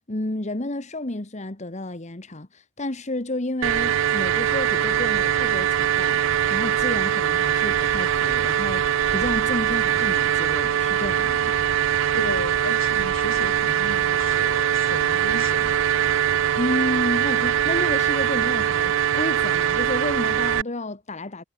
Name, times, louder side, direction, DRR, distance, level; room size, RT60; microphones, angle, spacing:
voice 1, 0.0-11.5 16.6-21.4, left 1 dB, 35° left, 1.5 m, -31 dB
sound 1, 3.6-20.6, right 9 dB, 65° right, 0.4 m, -22 dB
voice 2, 12.1-15.8, left 2 dB, 70° left, 3.0 m, -34 dB
head